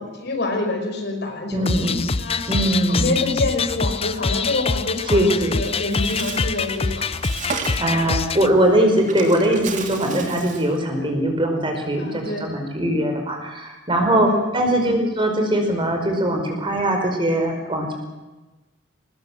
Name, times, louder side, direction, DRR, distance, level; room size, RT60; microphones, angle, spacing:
voice 1, 0.0-1.9 2.1-2.5 2.9-7.1 12.0-12.5 14.1-14.6, left 2 dB, 60° left, 3 dB, 5.6 m, -27 dB
voice 2, 1.5-2.0 2.5-3.1 5.1-5.6 7.8-17.9, right 1 dB, 25° right, 3 dB, 5.0 m, -21 dB
sound 1, 1.7-8.5, left 4 dB, 30° left, 0.7 m, -25 dB
Bird, 5.6-10.8, right 4 dB, 40° right, 2.8 m, -34 dB
23.0 x 20.0 x 7.8 m, 1.1 s
head